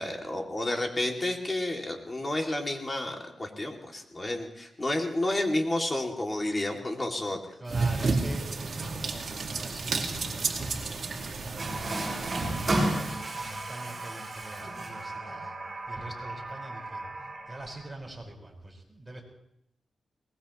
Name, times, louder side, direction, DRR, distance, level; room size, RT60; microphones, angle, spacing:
voice 1, 0.0-7.4, left 1 dB, 25° left, 2 dB, 2.4 m, -30 dB
voice 2, 7.5-15.6 15.9-17.1 17.5-19.2, right 2 dB, 10° right, -1 dB, 4.8 m, -44 dB
sound 1, 7.7-13.2, right 3 dB, 60° right, 2.1 m, -31 dB
Water tap faucet, 11.6-17.9, right 1 dB, 35° right, 6.0 m, -34 dB
22.5 x 20.0 x 3.1 m, 0.79 s
cardioid pair, 90°, 0 cm